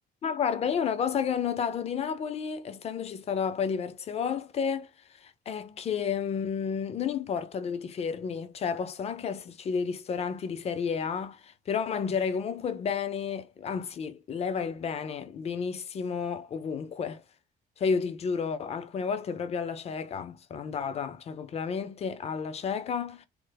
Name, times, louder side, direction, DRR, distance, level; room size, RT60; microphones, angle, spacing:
voice 1, 0.2-4.9 5.2-17.2 17.8-23.3, left 6 dB, 40° left, 0.5 m, -31 dB
3.3 x 2.1 x 3.3 m
cardioid pair, 110°, 17 cm